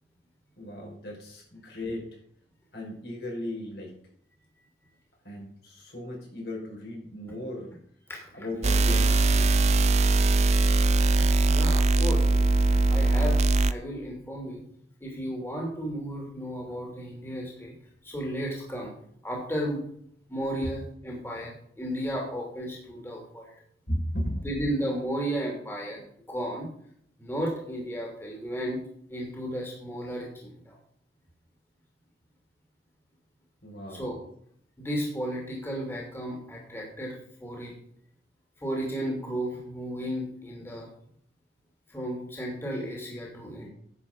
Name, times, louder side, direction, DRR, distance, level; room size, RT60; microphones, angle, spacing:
voice 1, 0.6-2.1 2.7-3.9 5.2-7.7 8.3-9.5 11.8-11.9 12.2-12.4 23.9-24.3 33.6-34.1, left 1 dB, 65° left, -2 dB, 5.6 m, -36 dB
sound 1, 8.6-13.7, right 2 dB, 40° right, 0.5 m, -21 dB
voice 2, 11.2-12.2 12.9-14.6 15.0-17.7 18.0-18.9 19.2-19.8 20.3-23.5 24.4-26.0 26.3-26.7 27.2-28.8 29.1-30.7 33.9-34.2 34.8-37.7 38.6-40.9 41.9-43.7, equal, 15° left, -2 dB, 2.9 m, -34 dB
10.5 x 7.5 x 5.3 m, 0.65 s
head